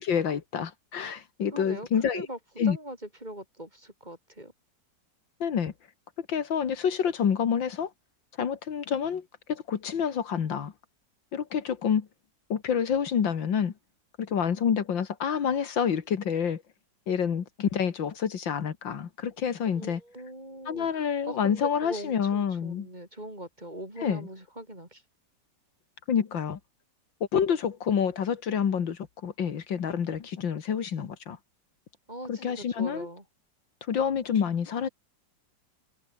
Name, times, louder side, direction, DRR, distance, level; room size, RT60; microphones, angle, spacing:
voice 1, 0.0-2.3 2.6-2.8 5.4-5.7 6.2-7.9 8.4-10.7 11.3-12.1 12.5-13.7 14.2-16.6 17.1-20.0 20.7-22.9 24.0-24.3 26.1-26.6 27.3-31.4 32.3-33.1 33.9-34.9, left 7 dB, 80° left, 2.4 m, -28 dB
voice 2, 1.5-1.9 2.1-2.4 2.7-4.5 19.7-25.0 32.1-33.2, right 1 dB, 20° right, 6.0 m, -41 dB
omnidirectional pair, 2.0 m